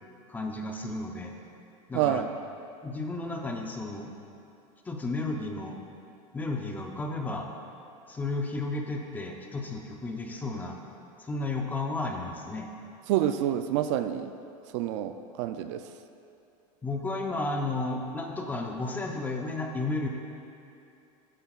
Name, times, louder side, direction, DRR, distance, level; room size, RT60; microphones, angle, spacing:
voice 1, 0.3-1.3 1.9-2.3 2.8-4.1 4.9-5.8 6.3-7.5 8.1-10.8 11.2-12.7 16.8-20.1, left 2 dB, 10° left, 2 dB, 0.6 m, -33 dB
voice 2, 1.9-2.3 13.1-14.3 14.7-15.8, right 11 dB, 55° right, 9 dB, 0.4 m, -28 dB
12.5 x 10.0 x 2.4 m, 2.7 s
supercardioid pair, 165°, 18 cm